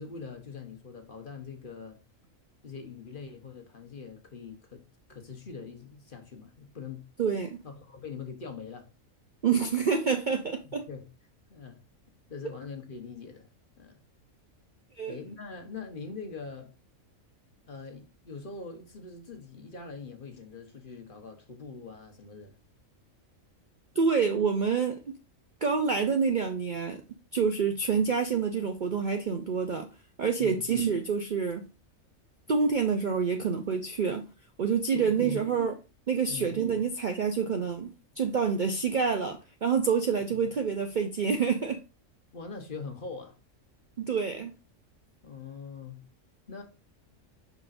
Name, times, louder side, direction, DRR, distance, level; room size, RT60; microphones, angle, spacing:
voice 1, 0.0-2.0 2.6-4.8 5.1-7.1 7.6-8.9 10.9-11.1 11.5-11.8 12.3-13.5 13.8-14.0 15.1-16.7 17.7-22.6 30.4-30.6 34.9-35.4 36.3-36.6 40.3-40.4 42.3-43.4 45.2-46.1 46.5-46.6, left 5 dB, 40° left, 1.1 m, -42 dB
voice 2, 7.2-7.6 9.4-10.9 15.0-15.2 23.9-25.2 25.6-27.0 27.3-29.9 30.2-31.6 32.5-34.3 34.6-35.7 36.1-41.8 44.0-44.5, right 6 dB, 50° right, 0.6 m, -27 dB
6.8 x 5.8 x 2.5 m
omnidirectional pair, 1.4 m